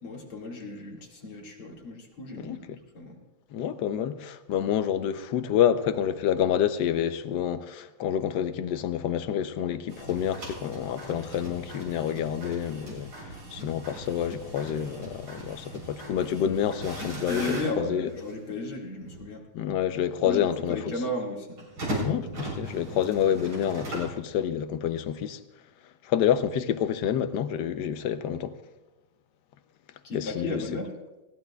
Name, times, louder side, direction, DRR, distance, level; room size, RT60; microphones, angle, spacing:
voice 1, 0.0-2.7 2.9-3.2 17.3-19.5 20.2-21.6 30.0-31.0, left 2 dB, 90° left, 2.9 m, -34 dB
voice 2, 2.4-2.8 3.5-18.1 19.5-20.8 22.0-25.4 26.0-28.5 30.1-30.6, left 9 dB, 70° left, 1.1 m, -28 dB
sound 1, 9.9-18.4 19.1-19.2 21.6-24.2, right 1 dB, 85° right, 4.8 m, -38 dB
20.5 x 16.5 x 2.3 m
omnidirectional pair, 2.2 m